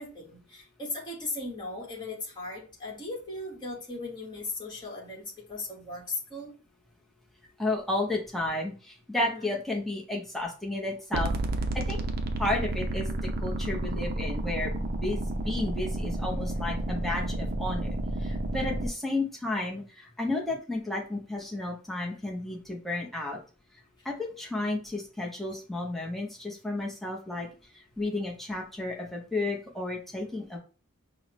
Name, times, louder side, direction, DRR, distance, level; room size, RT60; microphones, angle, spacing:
voice 1, 0.0-6.5 9.2-9.4 18.4-18.8, left 2 dB, 20° left, -2 dB, 1.3 m, -38 dB
voice 2, 7.6-11.3 11.7-12.0 12.4-13.1 13.4-15.2 15.4-17.9 18.2-23.4 24.0-27.5 28.0-30.6, left 2 dB, ahead, -2 dB, 0.7 m, -32 dB
sound 1, 11.1-18.9, right 2 dB, 45° right, 0.5 m, -31 dB
5.5 x 2.1 x 3.0 m, 0.36 s
head